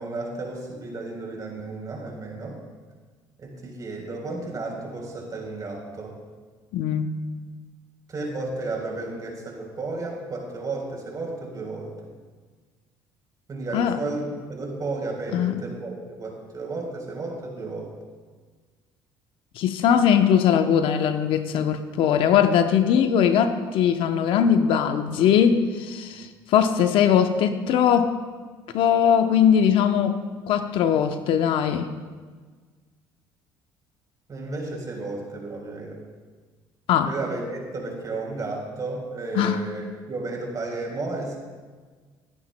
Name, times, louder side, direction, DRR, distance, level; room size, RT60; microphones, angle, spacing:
voice 1, 0.0-2.6 3.4-6.2 8.1-12.1 13.5-17.9 34.3-36.0 37.0-41.4, right 3 dB, 40° right, 0 dB, 3.7 m, -33 dB
voice 2, 6.7-7.1 13.7-14.0 15.3-15.6 19.6-28.1 28.7-31.9 36.9-37.1 39.4-39.6, left 8 dB, 70° left, 8 dB, 0.7 m, -20 dB
20.5 x 9.7 x 2.2 m, 1.5 s
supercardioid pair, 75°, 9 cm